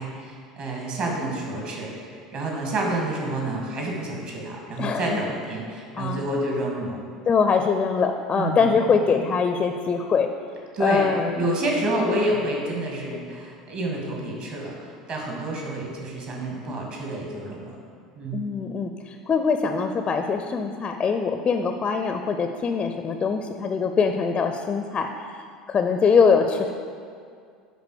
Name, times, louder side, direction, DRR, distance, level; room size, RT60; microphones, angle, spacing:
voice 1, 0.0-7.0 8.4-8.7 10.7-11.1 11.4-17.8 18.2-18.4, right 1 dB, 45° right, -1 dB, 2.1 m, -28 dB
voice 2, 4.8-5.2 6.0-6.2 7.3-10.3 10.8-11.5 18.3-25.1 25.7-26.7, left 5 dB, 25° left, 6 dB, 0.5 m, -23 dB
9.5 x 4.0 x 6.5 m, 2.2 s
figure-of-eight pair, 70°, 3 cm